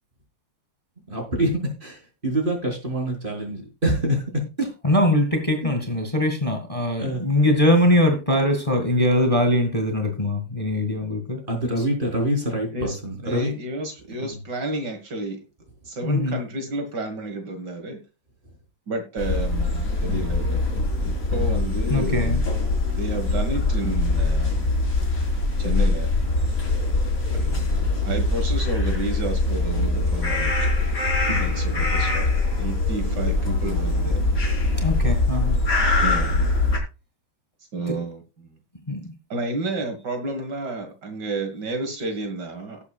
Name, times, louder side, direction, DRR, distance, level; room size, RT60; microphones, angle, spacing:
voice 1, 1.1-1.5 1.8-1.9 2.2-4.2 5.6-5.7 7.0-7.2 11.5-13.5 14.2-14.3 31.3-31.4, right 1 dB, 25° right, 1 dB, 4.3 m, -25 dB
voice 2, 4.8-11.4 11.8-11.9 16.0-16.4 21.8-22.4 34.8-35.6 37.9-38.0 38.9-39.0, left 1 dB, 20° left, 3 dB, 2.0 m, -22 dB
voice 3, 13.2-15.4 15.8-18.0 18.9-20.6 21.0-22.5 23.0-24.8 25.6-26.1 27.3-30.5 31.4-32.3 32.5-34.2 36.0-36.7 37.7-38.6 39.3-42.8, right 2 dB, 65° right, 6 dB, 2.4 m, -31 dB
sound 1, 19.2-36.8, left 2 dB, 50° left, 4.5 m, -23 dB
18.0 x 8.3 x 2.4 m, 0.31 s
omnidirectional pair, 2.0 m